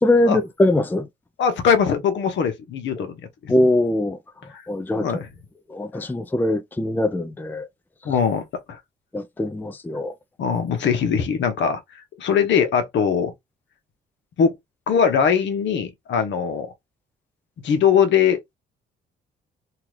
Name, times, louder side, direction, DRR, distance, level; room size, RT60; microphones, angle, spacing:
voice 1, 0.0-1.1 3.5-4.2 4.7-5.1 5.7-7.7 9.1-10.1, left 1 dB, 10° left, 0.4 m, -21 dB
voice 2, 1.4-3.2 3.4-3.5 4.5-4.6 4.9-5.3 8.0-8.4 8.7-8.8 10.4-11.8 12.2-13.3 14.4-14.5 14.9-16.7 17.6-18.6, left 7 dB, 70° left, 0.9 m, -21 dB
2.8 x 2.4 x 3.1 m
cardioid pair, 90°, 20 cm